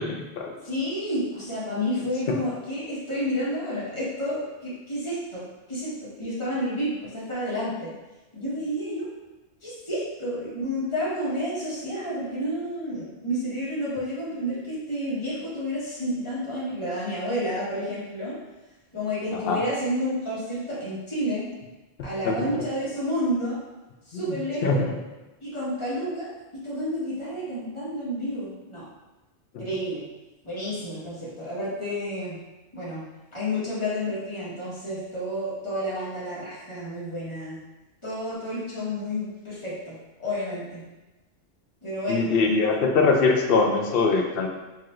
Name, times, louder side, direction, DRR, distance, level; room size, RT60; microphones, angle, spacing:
voice 1, 0.0-0.5 19.3-19.6 22.2-22.5 24.1-24.2 24.6-24.9 29.5-29.6 42.1-44.5, left 4 dB, 60° left, 2 dB, 0.7 m, -22 dB
voice 2, 0.7-5.4 5.7-7.9 8.3-9.1 9.6-18.4 18.9-21.5 22.0-23.6 24.1-24.8 25.4-28.8 29.6-30.0 30.4-32.4 32.7-33.0 33.3-37.6 38.0-40.8 41.8-42.6, equal, 25° left, -9 dB, 1.4 m, -30 dB
4.6 x 2.9 x 2.5 m, 1.1 s
omnidirectional pair, 1.2 m